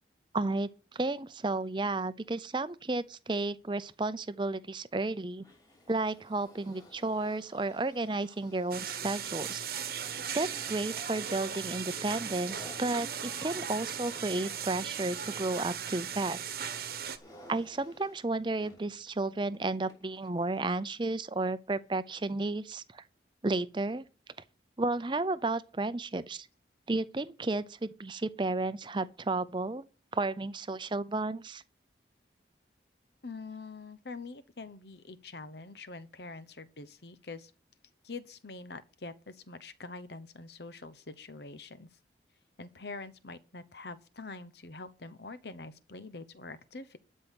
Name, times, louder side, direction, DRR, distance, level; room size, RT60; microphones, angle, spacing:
voice 1, 0.3-5.4 5.9-9.7 10.3-16.4 17.5-23.0 23.4-24.0 24.8-26.5 26.9-29.8 30.1-31.6, right 2 dB, 25° right, 0.6 m, -32 dB
sound 1, 5.4-20.9 21.7-21.8, left 1 dB, 20° left, 3.0 m, -57 dB
sound 2, 8.7-17.2, right 8 dB, 55° right, 1.1 m, -37 dB
voice 2, 33.2-37.5 38.0-41.9 42.6-47.0, left 3 dB, 65° left, 1.0 m, -45 dB
12.5 x 5.5 x 8.4 m
head